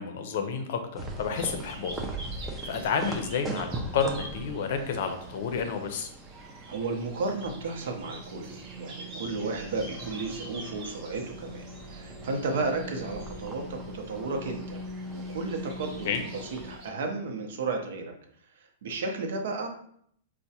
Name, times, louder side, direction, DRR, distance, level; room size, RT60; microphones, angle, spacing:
voice 1, 0.0-1.9 2.3-6.1 16.0-16.2, left 6 dB, 55° left, 6 dB, 0.5 m, -30 dB
sound 1, 0.9-16.7, right 1 dB, 5° right, 0.4 m, -40 dB
sound 2, 1.3-16.9, right 2 dB, 25° right, 0.9 m, -48 dB
voice 2, 6.7-14.8 15.1-16.1 16.5-18.1 18.6-19.7, right 3 dB, 65° right, 3 dB, 0.7 m, -33 dB
4.6 x 2.1 x 2.8 m, 0.66 s
hypercardioid pair, 160°, 0 cm